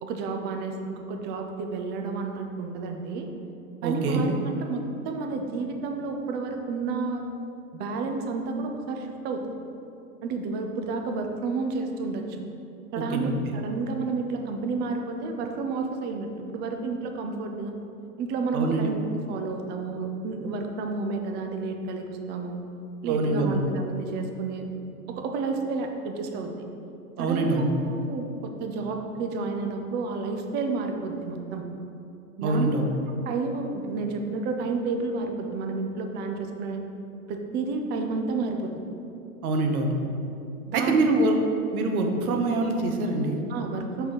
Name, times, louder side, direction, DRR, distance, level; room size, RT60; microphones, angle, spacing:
voice 1, 0.0-3.3 3.8-7.2 7.7-9.4 10.2-12.4 12.9-17.7 18.2-22.6 23.0-24.7 25.1-26.5 27.2-31.6 32.4-32.7 33.3-36.8 37.3-38.7 40.7-41.0 43.5-44.1, right 4 dB, 25° right, 4 dB, 0.4 m, -30 dB
voice 2, 3.8-4.2 13.0-13.3 18.5-18.9 23.0-23.6 27.2-27.7 32.4-32.9 39.4-39.9 40.7-41.3 41.7-43.4, right 2 dB, 65° right, 3 dB, 0.9 m, -25 dB
5.3 x 4.2 x 4.5 m, 2.7 s
hypercardioid pair, 100°, 46 cm